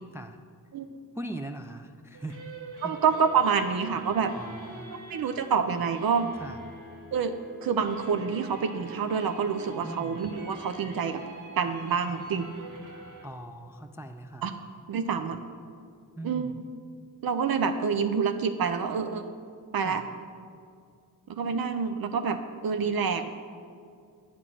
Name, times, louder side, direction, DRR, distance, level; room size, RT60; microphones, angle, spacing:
voice 1, 1.1-2.4 2.8-2.9 4.3-4.9 6.4-6.6 9.8-10.2 13.2-14.5 16.2-16.6 19.8-20.1, right 1 dB, 10° right, 5 dB, 0.3 m, -40 dB
sound 1, 2.1-13.3, right 2 dB, 60° right, 1.7 m, -46 dB
voice 2, 2.8-4.3 5.1-6.3 7.1-7.3 7.6-11.2 11.6-12.6 14.4-14.5 14.9-15.4 16.2-16.5 17.2-19.2 19.7-20.0 21.3-23.3, right 6 dB, 80° right, 9 dB, 0.6 m, -27 dB
9.4 x 6.0 x 7.6 m, 2.3 s
wide cardioid pair, 140°, 35 cm